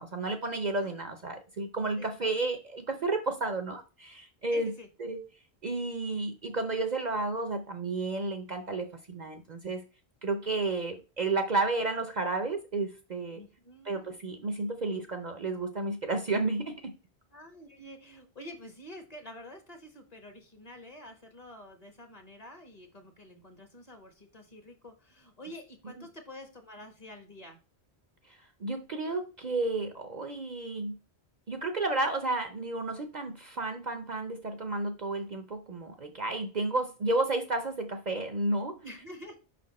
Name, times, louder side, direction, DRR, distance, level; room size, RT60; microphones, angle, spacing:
voice 1, 0.0-4.7 5.0-5.2 5.6-9.8 10.2-13.4 13.8-16.9 25.8-26.1 28.6-31.0 31.5-38.8, right 2 dB, 45° right, 6 dB, 0.7 m, -32 dB
voice 2, 2.0-2.3 4.5-4.9 13.3-14.1 17.3-27.6 38.8-39.4, left 1 dB, 40° left, 4 dB, 1.4 m, -48 dB
5.7 x 4.2 x 4.1 m, 0.32 s
omnidirectional pair, 1.1 m